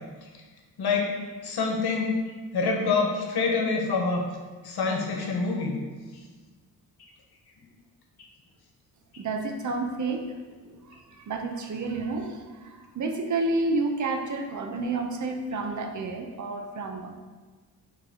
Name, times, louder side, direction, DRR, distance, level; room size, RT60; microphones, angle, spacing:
voice 1, 0.8-1.2 1.4-2.2 2.5-4.3 4.6-5.8, left 4 dB, 80° left, 1 dB, 1.2 m, -26 dB
voice 2, 9.2-17.2, right 3 dB, 50° right, 4 dB, 0.7 m, -30 dB
8.8 x 3.4 x 3.6 m, 1.4 s
wide cardioid pair, 135°, 38 cm